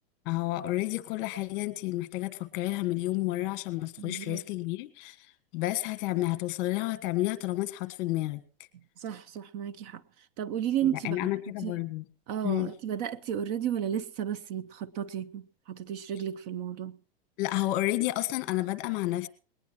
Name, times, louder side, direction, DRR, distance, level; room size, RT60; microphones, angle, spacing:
voice 1, 0.2-5.3 5.5-8.4 10.8-12.0 12.4-12.7 17.4-19.3, left 17 dB, 40° left, 1.4 m, -30 dB
voice 2, 4.0-4.4 9.0-10.0 10.4-11.2 11.6-11.7 12.3-17.0, right 10 dB, 45° right, 0.7 m, -33 dB
20.0 x 19.0 x 3.0 m
supercardioid pair, 150°, 29 cm